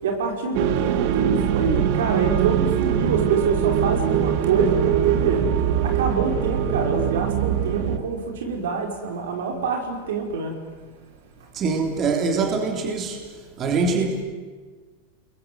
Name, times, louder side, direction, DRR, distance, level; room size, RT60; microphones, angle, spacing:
voice 1, 0.0-5.5 5.8-10.6, right 5 dB, 80° right, 5.8 m, -26 dB
sound 1, 0.5-8.0, right 9 dB, 55° right, 2.0 m, -22 dB
voice 2, 11.5-13.3 13.6-14.2, right 4 dB, 30° right, 3.4 m, -23 dB
29.5 x 22.0 x 8.1 m
supercardioid pair, 145°, 0 cm